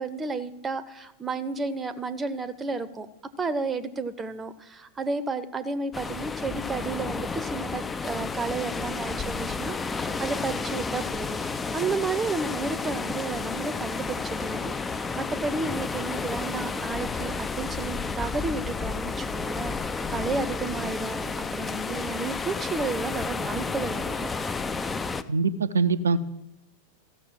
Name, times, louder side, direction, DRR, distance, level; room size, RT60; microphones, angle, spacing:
voice 1, 0.0-3.1 3.4-11.4 11.7-24.2, right 3 dB, 15° right, 14 dB, 0.8 m, -32 dB
sound 1, 5.9-25.2, left 4 dB, 15° left, 0.5 m, -31 dB
voice 2, 25.3-26.2, right 4 dB, 70° right, 11 dB, 0.5 m, -23 dB
14.0 x 6.6 x 7.7 m, 0.95 s
figure-of-eight pair, 90°, 0 cm